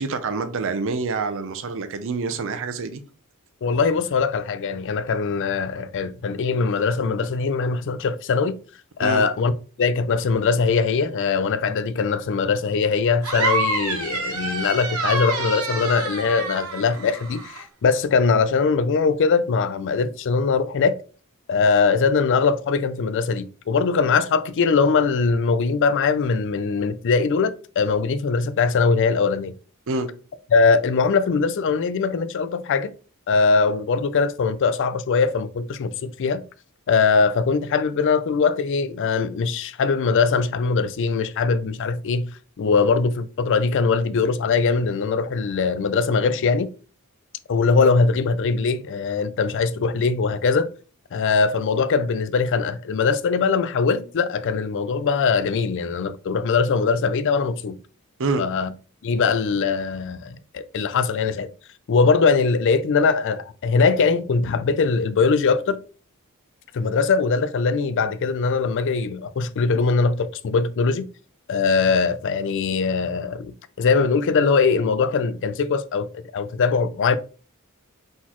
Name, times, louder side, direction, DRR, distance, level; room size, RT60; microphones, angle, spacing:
voice 1, 0.0-3.0 9.0-9.3 29.9-30.1 58.2-58.4, right 4 dB, 65° right, 0.6 m, -26 dB
voice 2, 3.6-8.6 9.0-9.5 9.8-21.0 21.5-29.6 30.5-32.9 33.3-36.4 36.9-42.3 42.6-46.7 47.5-50.7 51.1-57.8 58.4-58.7 59.0-61.5 61.9-65.8 66.7-71.1 71.5-77.2, left 4 dB, 60° left, 0.4 m, -21 dB
sound 1, 13.2-17.6, right 3 dB, 85° right, 1.3 m, -27 dB
4.1 x 3.8 x 3.0 m
head